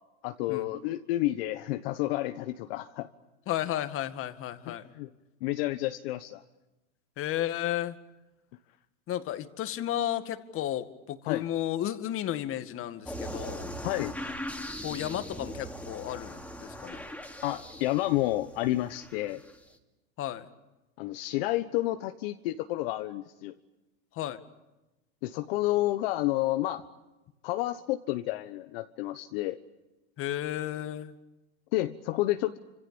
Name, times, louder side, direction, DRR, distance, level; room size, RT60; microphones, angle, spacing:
voice 1, 0.2-3.1 4.7-5.1 5.4-6.4 11.2-11.5 13.6-14.1 17.4-19.4 21.0-23.5 25.2-26.8 27.4-29.6 31.7-32.6, left 16 dB, 65° left, 9 dB, 1.3 m, -30 dB
voice 2, 3.5-4.8 7.2-8.0 9.1-13.7 14.8-17.0 20.2-20.5 24.1-24.4 30.2-31.1, left 12 dB, 40° left, 10 dB, 2.1 m, -33 dB
sound 1, 13.1-19.6, equal, 5° left, 2.9 m, -40 dB
28.5 x 26.5 x 7.1 m, 1.0 s
hypercardioid pair, 105°, 32 cm